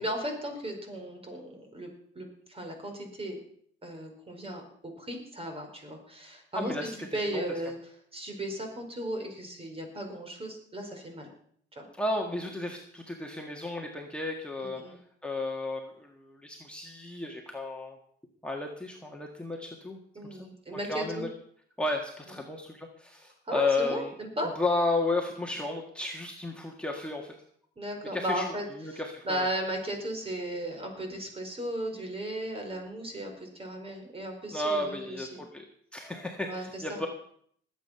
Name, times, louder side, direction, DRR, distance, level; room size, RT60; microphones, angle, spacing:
voice 1, 0.0-3.4 3.8-6.7 7.1-7.8 8.1-11.3 11.7-11.8 14.6-15.0 20.1-21.3 23.5-24.5 27.8-28.7 28.9-35.4 36.4-37.0, right 1 dB, 30° right, 4 dB, 4.7 m, -36 dB
voice 2, 6.5-7.4 11.9-18.0 18.4-21.3 21.8-24.1 24.6-27.4 28.1-28.5 28.7-29.5 34.5-35.7 35.9-37.1, left 2 dB, 5° left, 0 dB, 1.8 m, -33 dB
20.0 x 8.4 x 5.8 m, 0.64 s
cardioid pair, 90°, 20 cm